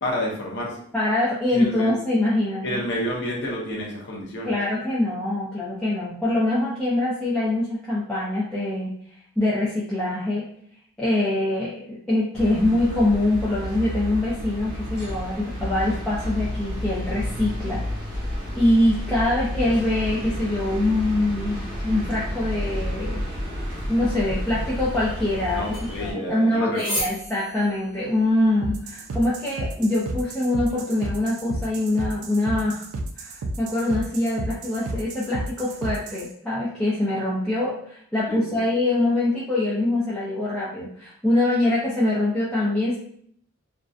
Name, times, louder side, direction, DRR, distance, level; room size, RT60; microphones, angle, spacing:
voice 1, 0.0-0.8 1.5-1.9 2.6-4.5 25.5-27.0 38.3-38.6, equal, 55° left, -2 dB, 0.7 m, -29 dB
voice 2, 0.9-2.8 4.5-9.0 9.4-10.5 11.0-17.9 18.5-23.2 23.9-32.8 33.2-43.0, left 1 dB, 5° left, -9 dB, 0.4 m, -24 dB
sound 1, 12.3-26.1, equal, 50° right, 0.9 m, -31 dB
sound 2, 24.3-30.3, equal, 20° left, 1.0 m, -37 dB
sound 3, 28.6-36.3, right 2 dB, 90° right, 0.4 m, -32 dB
2.6 x 2.1 x 2.4 m, 0.63 s
head